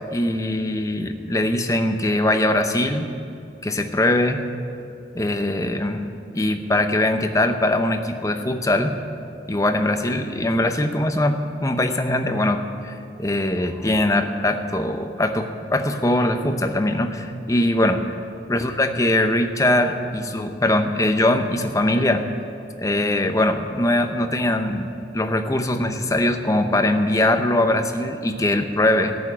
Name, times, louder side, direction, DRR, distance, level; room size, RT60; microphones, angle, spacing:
voice 1, 0.1-3.1 3.6-4.4 5.1-6.1 6.3-9.0 9.5-18.0 18.5-22.2 22.8-24.9 25.1-29.2, left 1 dB, 20° left, 7 dB, 0.7 m, -21 dB
14.0 x 7.1 x 9.8 m, 2.6 s
head